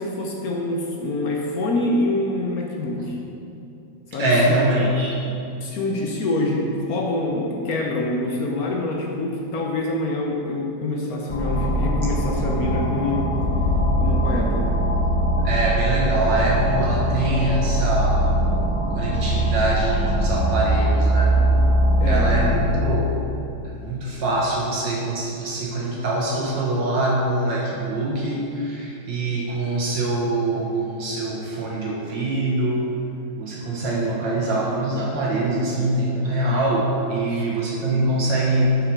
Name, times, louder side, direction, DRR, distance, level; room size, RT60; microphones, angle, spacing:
voice 1, 0.0-3.2 4.1-4.6 5.6-13.4 14.0-14.8 21.3-21.5 22.0-22.4 37.3-37.4, left 2 dB, 60° left, 0 dB, 1.0 m, -26 dB
voice 2, 4.2-5.2 15.4-18.3 18.9-21.4 22.1-23.1 23.6-32.9 33.4-38.8, right 1 dB, 65° right, -4 dB, 1.7 m, -23 dB
sound 1, 11.3-22.6, right 1 dB, 20° left, 1.1 m, -21 dB
7.4 x 5.6 x 4.6 m, 2.7 s
omnidirectional pair, 2.2 m